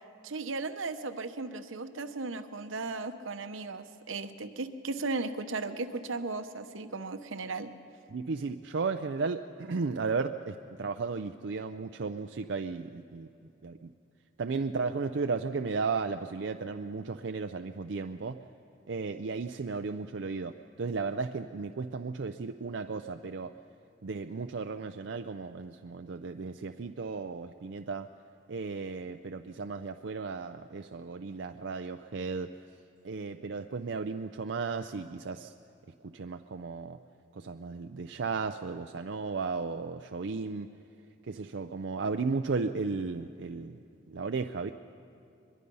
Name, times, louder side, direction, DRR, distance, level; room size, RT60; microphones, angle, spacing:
voice 1, 0.2-7.7, right 3 dB, 85° right, 8 dB, 1.0 m, -36 dB
voice 2, 8.1-13.3 13.6-13.9 14.4-18.4 18.9-23.5 24.0-28.1 28.5-32.5 33.0-35.5 36.1-37.0 37.4-40.7 41.3-43.8 44.1-44.7, right 4 dB, 65° right, 7 dB, 0.5 m, -34 dB
23.5 x 22.0 x 5.5 m, 2.6 s
head